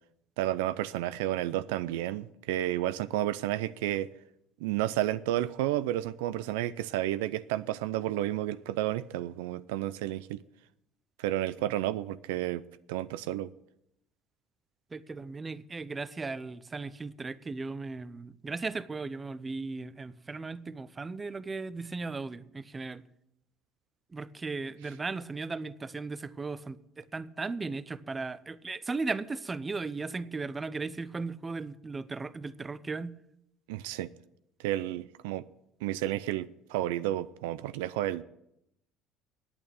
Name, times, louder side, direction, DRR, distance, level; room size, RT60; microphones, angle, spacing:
voice 1, 0.4-4.1 4.6-10.4 11.2-12.6 12.9-13.5 33.7-34.1 34.6-35.4 35.8-38.2, right 14 dB, 85° right, 0.4 m, -31 dB
voice 2, 14.9-23.0 24.1-33.2, right 3 dB, 25° right, 0.6 m, -37 dB
8.7 x 8.7 x 9.1 m
supercardioid pair, 85°, 0 cm